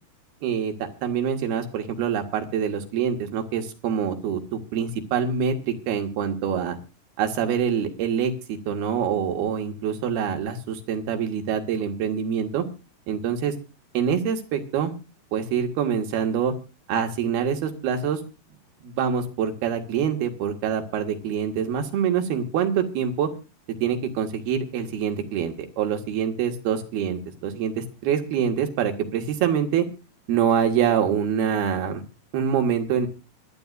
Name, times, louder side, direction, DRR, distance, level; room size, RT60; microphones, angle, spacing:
voice 1, 0.4-0.7 1.0-6.8 7.2-12.6 13.1-13.5 13.9-14.9 15.3-16.5 16.9-18.2 18.8-23.3 23.8-29.9 30.3-32.0 32.3-33.1, right 7 dB, 70° right, 5 dB, 3.8 m, -25 dB
25.0 x 9.8 x 2.5 m, 0.31 s
omnidirectional pair, 4.7 m